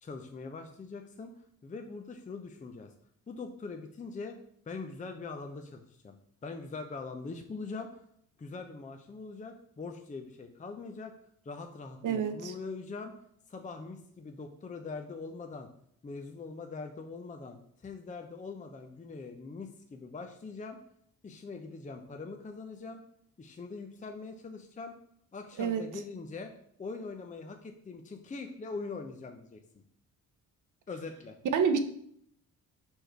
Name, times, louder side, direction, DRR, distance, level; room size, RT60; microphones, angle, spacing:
voice 1, 0.0-2.9 3.3-4.4 4.7-6.2 6.4-8.0 8.4-11.1 11.4-13.1 13.5-15.7 16.0-20.8 21.2-23.0 23.4-25.0 25.3-26.5 26.8-29.8 30.9-31.4, left 4 dB, 20° left, 5 dB, 0.6 m, -42 dB
voice 2, 12.0-12.5 25.6-25.8 31.5-31.8, right 6 dB, 60° right, 9 dB, 0.8 m, -27 dB
5.1 x 4.5 x 4.4 m, 0.67 s
cardioid pair, 75°, 34 cm